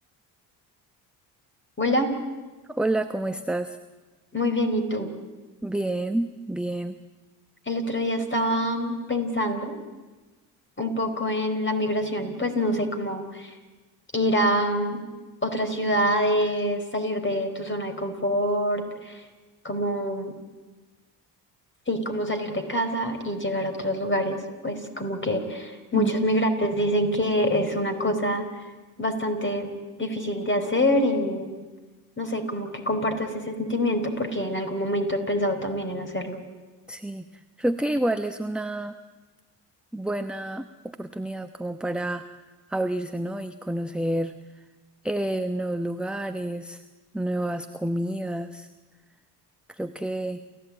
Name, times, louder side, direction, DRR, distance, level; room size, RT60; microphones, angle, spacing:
voice 1, 1.8-2.1 4.3-5.1 7.7-9.7 10.8-13.6 14.1-15.0 15.4-19.2 19.6-20.3 21.9-24.4 24.6-28.5 29.0-29.7 30.0-31.6 32.2-36.4, equal, 25° left, 7 dB, 4.6 m, -26 dB
voice 2, 2.7-3.8 5.6-7.0 25.9-26.1 36.9-39.0 39.9-42.3 42.7-44.3 45.0-46.8 47.1-48.7 49.7-50.4, right 1 dB, ahead, 8 dB, 1.0 m, -29 dB
28.5 x 15.0 x 8.8 m, 1.3 s
hypercardioid pair, 55°, 49 cm